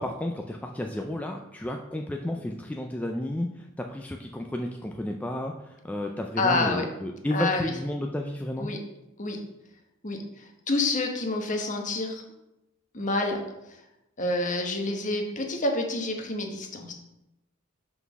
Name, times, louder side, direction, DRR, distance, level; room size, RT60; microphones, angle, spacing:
voice 1, 0.0-8.7, left 1 dB, 5° left, 2 dB, 0.3 m, -32 dB
voice 2, 6.4-6.9 7.3-7.7 8.6-8.8 9.2-9.4 10.0-10.2 10.7-12.2 12.9-13.4 14.2-16.9, left 2 dB, 40° left, 3 dB, 1.1 m, -27 dB
5.7 x 3.9 x 6.0 m, 0.91 s
head